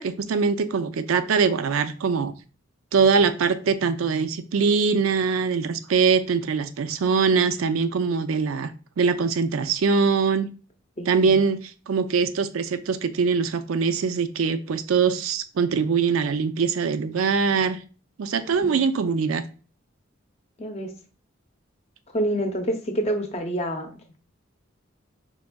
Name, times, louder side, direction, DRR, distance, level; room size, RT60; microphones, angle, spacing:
voice 1, 0.0-2.3 2.9-10.5 11.1-11.6 11.9-17.8 18.2-19.4, right 5 dB, 90° right, 12 dB, 0.4 m, -22 dB
voice 2, 11.0-11.4 18.6-18.8 20.6-20.9 22.1-23.9, right 1 dB, 30° left, 5 dB, 0.6 m, -27 dB
5.1 x 3.4 x 2.2 m, 0.36 s
head